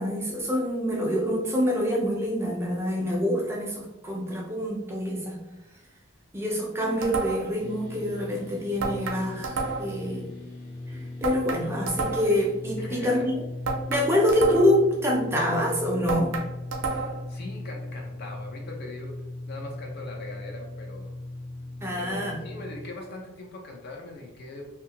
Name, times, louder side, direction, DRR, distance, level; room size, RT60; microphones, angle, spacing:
voice 1, 0.0-5.4 6.3-10.3 10.9-13.3 13.9-16.3 21.8-22.4, equal, 10° right, -2 dB, 0.4 m, -26 dB
sound 1, 7.0-7.6 8.8-10.0 11.2-12.4 13.6-14.9 16.1-17.3, right 4 dB, 75° right, 0.5 m, -31 dB
sound 2, 7.6-22.9, left 2 dB, 80° left, 0.8 m, -38 dB
voice 2, 12.8-13.3 16.9-21.1 22.0-24.7, left 2 dB, 50° left, 1 dB, 0.5 m, -41 dB
2.6 x 2.3 x 2.8 m, 1.0 s
head